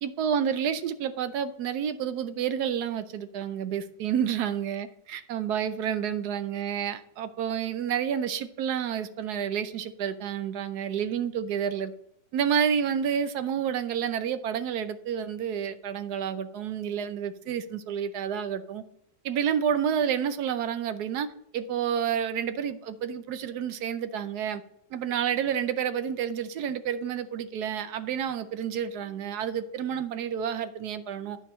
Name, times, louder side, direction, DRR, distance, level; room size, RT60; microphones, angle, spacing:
voice 1, 0.0-11.9 12.3-18.8 19.2-21.3 21.5-24.6 24.9-31.4, right 8 dB, 70° right, 1.1 m, -29 dB
12.0 x 4.5 x 4.2 m
omnidirectional pair, 2.0 m